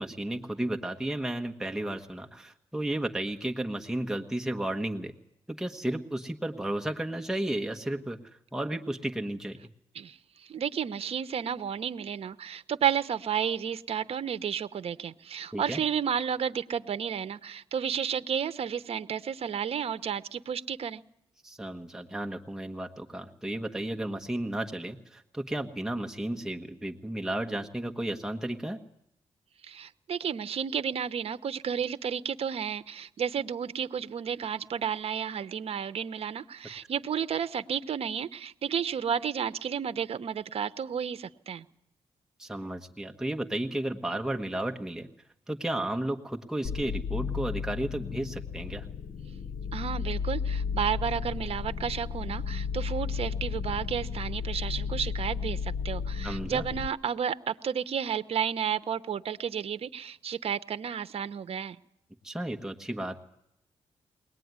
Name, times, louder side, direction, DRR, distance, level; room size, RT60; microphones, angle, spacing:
voice 1, 0.0-5.1 5.5-8.2 8.5-9.6 15.5-15.8 21.4-28.8 42.4-45.1 45.5-48.9 56.2-56.6 62.2-63.2, right 1 dB, 5° right, 4 dB, 1.4 m, -33 dB
voice 2, 9.9-21.0 29.6-41.7 49.7-61.8, right 8 dB, 65° right, 14 dB, 0.9 m, -32 dB
sound 1, 46.6-56.9, left 6 dB, 75° left, 0.9 m, -33 dB
22.0 x 19.0 x 9.6 m, 0.77 s
cardioid pair, 95°, 11 cm